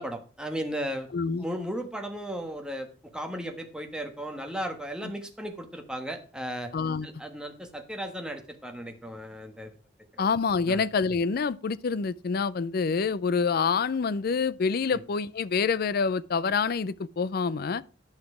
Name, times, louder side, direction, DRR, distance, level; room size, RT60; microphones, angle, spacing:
voice 1, 0.0-1.1 1.4-2.9 3.1-6.7 7.0-9.7 10.7-10.8 14.9-15.0, equal, 5° right, 1.3 m, -35 dB
voice 2, 1.1-1.5 5.0-5.1 6.7-7.1 10.2-17.8, left 5 dB, 55° left, 0.4 m, -27 dB
10.5 x 5.9 x 4.9 m
head